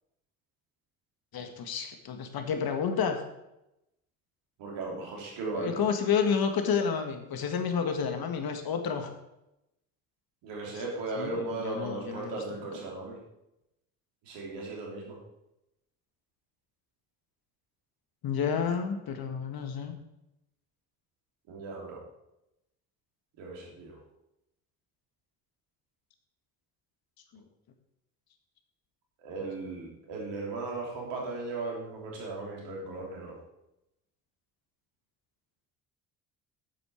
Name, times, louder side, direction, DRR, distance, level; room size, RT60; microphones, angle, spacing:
voice 1, 1.3-3.2 5.5-9.1 10.7-10.8 11.2-12.4 12.7-12.8 18.2-19.9 27.3-27.4, left 6 dB, 55° left, 6 dB, 1.7 m, -30 dB
voice 2, 4.6-5.8 10.4-13.2 14.3-15.2 21.5-22.0 23.4-23.9 29.2-33.4, right 3 dB, 70° right, -2 dB, 3.4 m, -37 dB
9.4 x 7.9 x 4.4 m, 0.87 s
hypercardioid pair, 55°, 45 cm